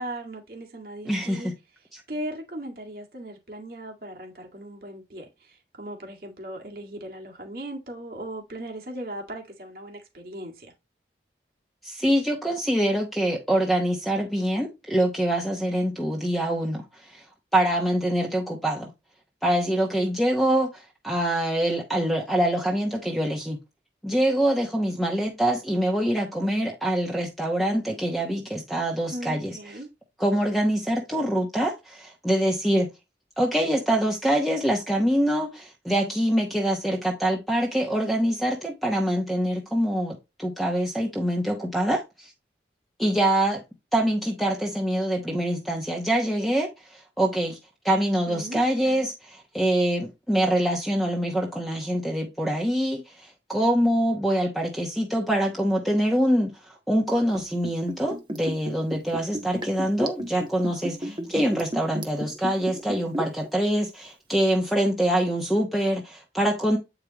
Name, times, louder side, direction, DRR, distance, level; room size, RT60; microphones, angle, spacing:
voice 1, 0.0-1.5 2.1-10.7 29.1-29.9 48.3-48.6, right 1 dB, 55° right, 1.9 m, -38 dB
voice 2, 1.1-1.4 1.9-2.0 11.8-17.2 17.5-18.9 19.4-23.6 24.0-29.8 30.2-32.9 33.4-42.3 43.0-43.6 43.9-47.6 47.8-66.8, right 1 dB, ahead, 1.0 m, -25 dB
Liquid, 57.3-63.5 63.8-63.9, equal, 25° right, 0.9 m, -33 dB
8.6 x 4.9 x 2.9 m
head